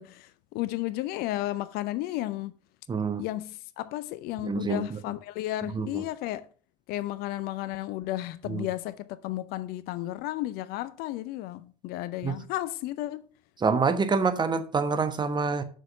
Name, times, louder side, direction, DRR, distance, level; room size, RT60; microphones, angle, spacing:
voice 1, 0.0-2.5 3.2-6.5 6.9-13.3, left 15 dB, 50° left, 0.5 m, -33 dB
voice 2, 2.9-3.2 4.4-5.0 5.7-5.9 8.5-8.6 12.2-12.4 13.6-15.6, right 4 dB, 20° right, 1.1 m, -26 dB
7.1 x 6.3 x 5.4 m
hypercardioid pair, 75°, 21 cm